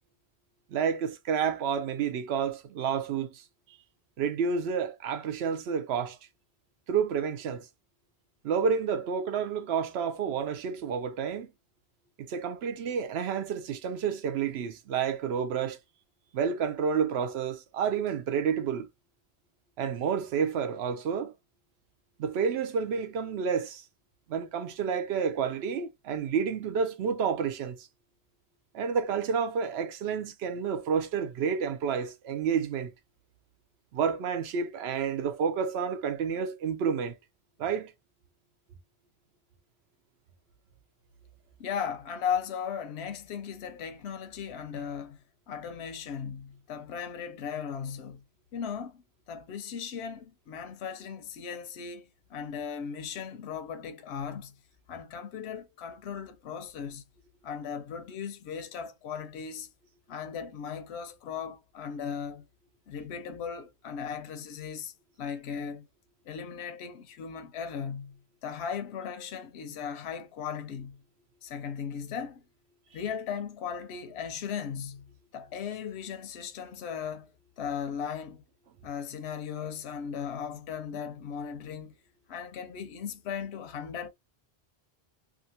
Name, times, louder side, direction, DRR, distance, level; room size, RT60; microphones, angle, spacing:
voice 1, 0.7-3.4 4.2-6.2 6.9-7.7 8.4-11.5 12.2-15.8 16.3-18.9 19.8-21.3 22.2-23.8 24.3-27.9 28.7-32.9 33.9-37.2 37.6-37.9, right 6 dB, 80° right, 0.8 m, -30 dB
voice 2, 41.6-45.2 45.5-48.2 48.5-49.0 49.3-54.5 54.9-57.0 57.4-59.7 60.1-62.5 62.9-65.9 66.3-71.0 71.4-72.4 72.9-75.0 75.3-77.3 77.6-78.4 78.8-81.9 82.3-84.1, left 7 dB, 85° left, 0.8 m, -37 dB
2.6 x 2.5 x 2.7 m
omnidirectional pair, 1.1 m